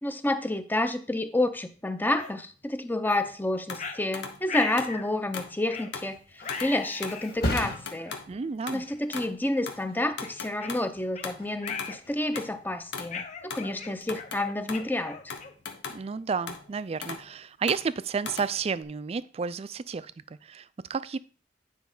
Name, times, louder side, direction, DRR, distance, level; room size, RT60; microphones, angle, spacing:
voice 1, 0.0-8.1 8.7-15.4, left 1 dB, 10° left, 10 dB, 0.6 m, -29 dB
sound 1, 2.2-2.3 3.1-3.2 3.8-4.0 4.5-5.1 5.7-5.9 6.4-7.3 8.1-8.2 8.9-9.1 9.5-9.7 10.2-11.3 11.6-12.0 12.3-12.7 13.1-15.7, left 5 dB, 40° left, 0.9 m, -38 dB
sound 2, 3.2-3.4 3.7-4.4 4.8-5.6 5.9-6.1 6.5-6.8 7.0-7.2 7.6-9.4 9.7-9.8 10.2-12.0 12.4-13.7 14.0-14.9 15.3-16.2 16.5-17.3 17.7-18.8, left 5 dB, 80° left, 1.2 m, -39 dB
Thump thud, 6.0-13.3 13.7-14.1, left 1 dB, 60° left, 2.1 m, -38 dB
voice 2, 8.3-8.8 15.9-21.2, right 5 dB, 35° right, 17 dB, 0.3 m, -31 dB
9.3 x 5.2 x 3.9 m, 0.40 s
head